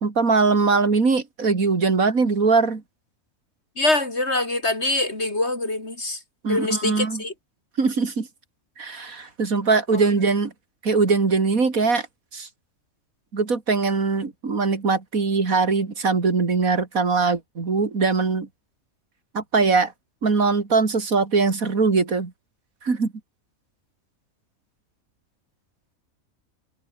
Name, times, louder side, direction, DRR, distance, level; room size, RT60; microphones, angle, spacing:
voice 1, 0.0-2.8 6.4-7.2 7.8-8.3 8.8-10.5 10.8-12.0 12.3-12.5 13.3-18.5 19.3-19.9 20.2-22.3 22.8-23.1, right 4 dB, 80° right, 3.2 m, -21 dB
voice 2, 3.8-6.2 6.5-7.3 9.9-10.0, left 2 dB, 50° left, 4.4 m, -24 dB
omnidirectional pair, 1.4 m